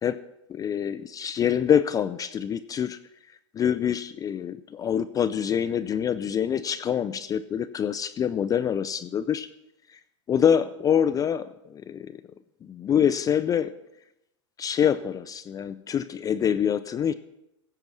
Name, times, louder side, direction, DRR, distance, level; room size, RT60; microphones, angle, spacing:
voice 1, 0.5-3.0 3.5-9.5 9.9-10.0 10.3-12.2 12.6-13.7 14.6-17.1, left 8 dB, 20° left, 11 dB, 0.4 m, -25 dB
16.5 x 6.7 x 6.1 m, 0.87 s
hypercardioid pair, 115°, 16 cm